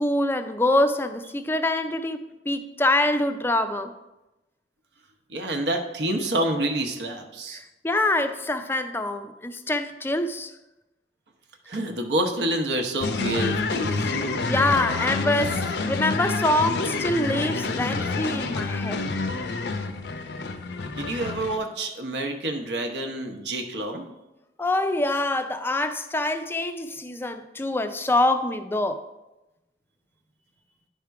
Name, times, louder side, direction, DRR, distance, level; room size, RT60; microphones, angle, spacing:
voice 1, 0.0-3.9 7.8-10.5 13.9-14.1 14.5-19.0 24.6-29.0, left 2 dB, 15° left, 8 dB, 0.4 m, -25 dB
voice 2, 5.3-7.6 11.7-13.9 20.9-24.1, right 1 dB, 70° right, 4 dB, 0.9 m, -28 dB
sound 1, 13.0-21.6, left 3 dB, 65° left, 0.6 m, -28 dB
10.5 x 3.6 x 4.7 m, 0.98 s
head